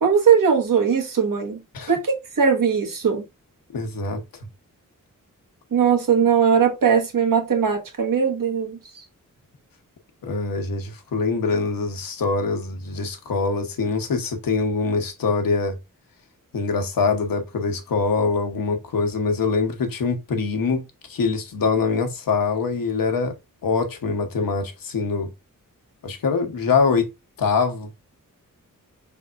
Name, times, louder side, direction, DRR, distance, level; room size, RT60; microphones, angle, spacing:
voice 1, 0.0-1.6 1.9-3.3 5.7-9.0, right 6 dB, 75° right, 1.3 m, -20 dB
voice 2, 3.7-4.2 10.2-15.8 16.5-20.8 21.1-23.3 23.6-25.3 26.0-27.0 27.4-27.9, left 4 dB, 85° left, 1.0 m, -23 dB
5.2 x 3.5 x 2.4 m
wide cardioid pair, 165°, 33 cm